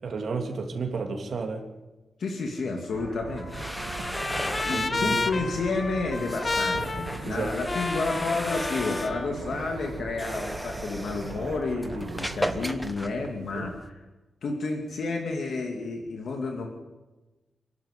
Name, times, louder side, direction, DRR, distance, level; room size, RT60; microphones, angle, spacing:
voice 1, 0.0-1.6 4.7-5.4 7.3-7.5 13.5-13.7, right 4 dB, 55° right, 3 dB, 3.0 m, -32 dB
voice 2, 2.2-3.7 4.4-14.0 14.4-16.7, left 3 dB, 65° left, 2 dB, 2.4 m, -31 dB
sound 1, 2.9-12.8, right 5 dB, 75° right, 2.2 m, -40 dB
Trumpet, 3.0-9.3, left 3 dB, 30° left, 0.6 m, -32 dB
sound 2, 3.3-13.9, equal, 5° left, 1.0 m, -37 dB
27.5 x 11.5 x 8.3 m, 1.1 s
wide cardioid pair, 165°, 0 cm